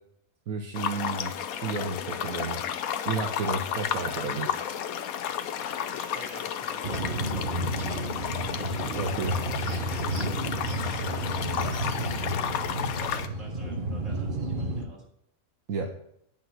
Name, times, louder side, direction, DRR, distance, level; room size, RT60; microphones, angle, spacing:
voice 1, 0.5-2.6 3.0-4.6 8.9-9.4 15.7-16.0, right 4 dB, 85° right, 4 dB, 1.5 m, -32 dB
sound 1, 0.7-13.3, left 9 dB, 85° left, 1.2 m, -32 dB
voice 2, 3.7-4.0 5.7-8.2 8.5-10.0 10.7-15.0, right 1 dB, 60° right, -3 dB, 4.3 m, -48 dB
sound 2, 6.8-14.9, right 1 dB, 40° right, 1.2 m, -31 dB
9.2 x 6.0 x 7.8 m, 0.72 s
omnidirectional pair, 1.5 m